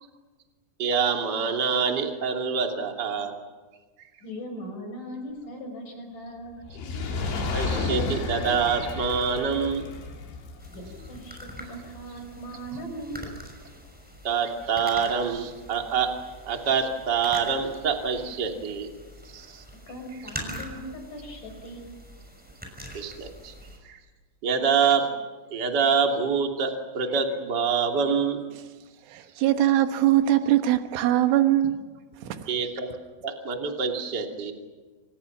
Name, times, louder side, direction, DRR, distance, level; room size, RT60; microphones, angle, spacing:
voice 1, 0.8-3.3 7.5-9.8 14.2-16.1 16.4-18.9 19.3-19.6 22.9-23.5 23.8-24.0 24.4-25.1 25.5-28.4 32.5-32.9 33.2-34.5, right 6 dB, 30° right, 2.4 m, -26 dB
voice 2, 4.2-6.6 10.7-13.3 19.9-21.9, equal, 45° left, 7.1 m, -39 dB
Fire, 6.6-13.0 13.7-13.8, left 4 dB, 70° left, 5.9 m, -32 dB
sound 1, 10.6-23.8, equal, ahead, 5.4 m, -44 dB
voice 3, 29.1-31.8 32.3-32.5, right 13 dB, 90° right, 3.9 m, -21 dB
29.5 x 27.0 x 6.0 m
omnidirectional pair, 5.5 m